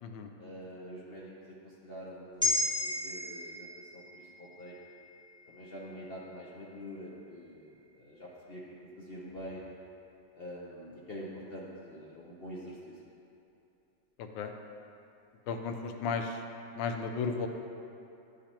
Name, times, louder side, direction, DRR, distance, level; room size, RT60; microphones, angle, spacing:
voice 1, 0.4-4.8 5.5-9.6 10.4-13.0, equal, 60° left, -5 dB, 0.6 m, -46 dB
sound 1, 2.4-6.9 7.3-7.4, left 2 dB, 5° left, 0.3 m, -36 dB
voice 2, 14.2-14.5 15.5-16.4 16.8-17.5, left 5 dB, 80° left, 5 dB, 1.3 m, -34 dB
11.5 x 5.0 x 2.9 m, 2.8 s
omnidirectional pair, 2.0 m